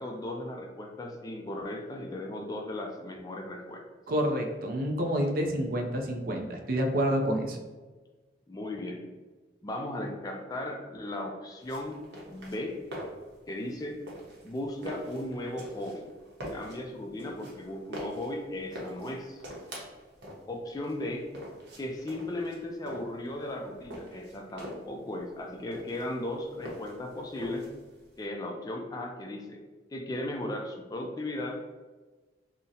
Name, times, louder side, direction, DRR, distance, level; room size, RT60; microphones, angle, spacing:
voice 1, 0.0-3.9 8.5-9.1 9.6-12.0 12.3-12.8 13.5-14.0 14.4-16.1 16.5-19.4 20.5-21.3 21.8-27.7 28.2-29.6 29.9-31.7, left 1 dB, 20° left, 2 dB, 0.3 m, -36 dB
voice 2, 4.1-7.6, equal, 55° right, 3 dB, 0.4 m, -28 dB
sound 1, 11.6-28.2, equal, 75° right, 0.8 m, -44 dB
3.8 x 2.0 x 2.6 m, 1.3 s
head